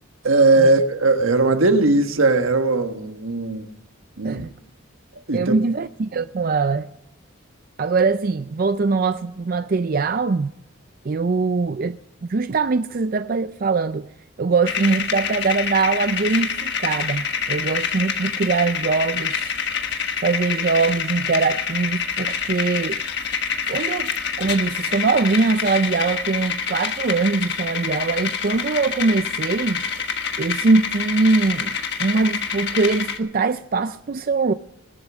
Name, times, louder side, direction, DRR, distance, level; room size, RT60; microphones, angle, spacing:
voice 1, 0.2-3.7 4.2-4.4 5.3-5.5, right 3 dB, 85° right, 1.4 m, -18 dB
voice 2, 5.3-6.9 7.8-10.5 11.0-12.0 12.3-14.1 14.4-19.5 20.2-23.0 23.7-24.1 24.4-29.8 30.4-34.5, right 4 dB, 45° right, 0.4 m, -22 dB
sound 1, 14.7-33.2, left 6 dB, 55° left, 1.3 m, -27 dB
21.0 x 8.3 x 6.2 m
head